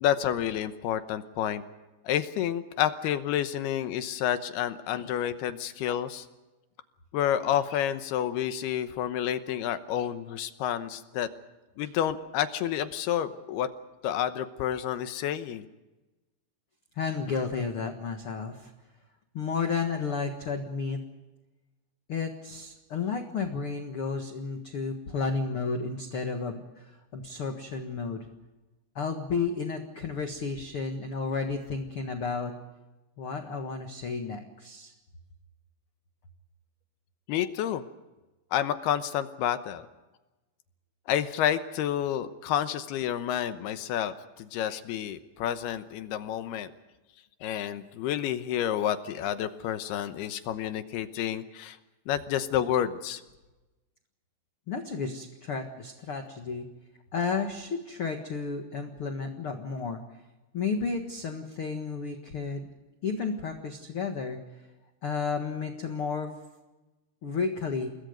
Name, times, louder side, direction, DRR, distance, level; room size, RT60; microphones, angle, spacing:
voice 1, 0.0-1.6 2.0-6.3 7.1-11.3 11.8-13.7 14.0-15.7 37.3-37.8 38.5-39.9 41.1-46.7 47.4-51.8 52.1-53.2, left 10 dB, 75° left, 10 dB, 2.8 m, -29 dB
voice 2, 16.9-18.7 19.3-21.0 22.1-28.3 28.9-32.5 33.2-34.9 54.7-56.7 57.1-60.0 60.5-62.7 63.0-64.4 65.0-66.3 67.2-67.9, left 5 dB, 60° left, 5 dB, 1.4 m, -32 dB
29.0 x 21.5 x 5.2 m, 1.1 s
omnidirectional pair, 5.1 m